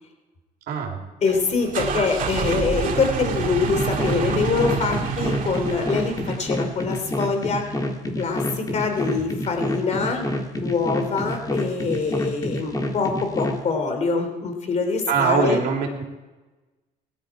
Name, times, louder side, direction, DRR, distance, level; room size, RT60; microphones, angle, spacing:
voice 1, 0.7-1.0 15.1-16.0, right 5 dB, 70° right, 0 dB, 2.9 m, -22 dB
voice 2, 1.2-7.6 8.2-10.2 10.6-15.6, left 4 dB, 40° left, 5 dB, 3.1 m, -24 dB
sound 1, 1.2-6.8, right 6 dB, 55° right, 1.9 m, -28 dB
sound 2, 3.7-13.6, left 1 dB, 20° left, 1.9 m, -28 dB
18.0 x 11.5 x 4.8 m, 1.2 s
cardioid pair, 110°, 17 cm